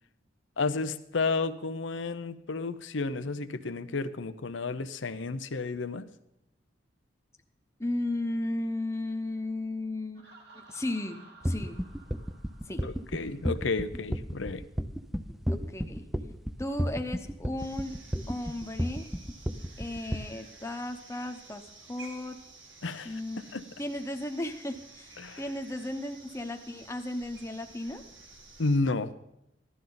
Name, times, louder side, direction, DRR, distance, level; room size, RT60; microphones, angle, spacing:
voice 1, 0.6-6.1 12.8-14.6 22.8-23.2 23.5-23.6 25.2-25.4 28.6-29.1, left 3 dB, 90° left, 11 dB, 0.8 m, -31 dB
voice 2, 7.8-10.3 10.5-11.2 11.4-11.8 12.7-12.8 15.5-16.1 16.6-18.0 18.3-19.1 19.8-21.6 21.9-22.4 23.0-23.4 23.8-28.0, left 1 dB, 15° left, 5 dB, 1.0 m, -35 dB
Laughter, 10.1-13.8, right 3 dB, 60° right, 2.1 m, -55 dB
sound 1, 11.4-20.2, equal, ahead, 0.5 m, -32 dB
sound 2, 17.6-28.8, right 3 dB, 85° right, 2.4 m, -52 dB
15.5 x 12.5 x 4.0 m, 0.85 s
head